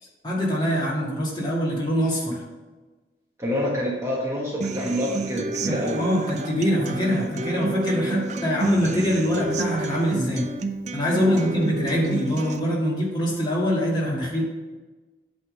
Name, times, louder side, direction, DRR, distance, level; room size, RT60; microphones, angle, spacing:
voice 1, 0.2-2.4 5.7-10.5 10.9-14.4, equal, 25° left, -5 dB, 2.0 m, -24 dB
voice 2, 3.4-6.1 11.1-11.4, equal, 15° right, -4 dB, 1.1 m, -27 dB
Human voice / Acoustic guitar, 4.6-12.6, right 2 dB, 40° right, 0.4 m, -29 dB
8.4 x 3.7 x 6.5 m, 1.2 s
head